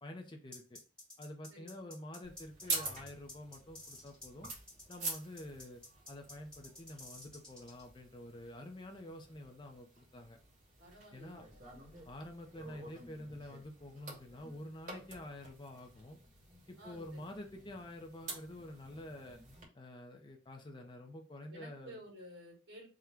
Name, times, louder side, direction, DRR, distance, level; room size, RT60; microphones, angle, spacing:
voice 1, 0.0-0.8 1.2-4.5 4.9-5.8 6.1-10.4 11.1-11.4 12.1-16.2 16.7-19.4 19.7-22.0, left 1 dB, 25° left, 3 dB, 0.5 m, -48 dB
sound 1, 0.5-7.8, left 2 dB, 5° left, 1.0 m, -52 dB
sound 2, 2.2-19.6, right 3 dB, 40° right, 1.2 m, -47 dB
voice 2, 10.8-11.6 16.8-17.2 21.5-22.9, equal, 75° right, -1 dB, 1.9 m, -53 dB
3.7 x 2.2 x 4.4 m, 0.34 s
head